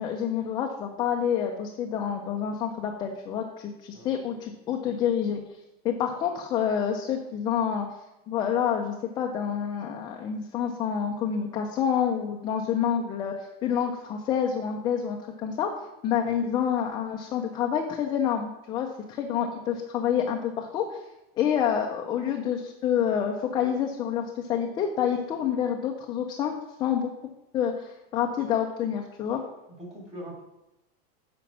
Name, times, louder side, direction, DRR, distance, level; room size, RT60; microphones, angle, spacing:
voice 1, 0.0-5.4 5.8-7.9 8.3-15.7 16.0-21.0 21.4-26.5 26.8-27.1 27.5-29.4, left 8 dB, 15° left, 1 dB, 0.3 m, -28 dB
voice 2, 29.6-30.4, equal, 20° right, -2 dB, 2.8 m, -43 dB
7.1 x 5.0 x 5.9 m, 0.92 s
supercardioid pair, 160°, 31 cm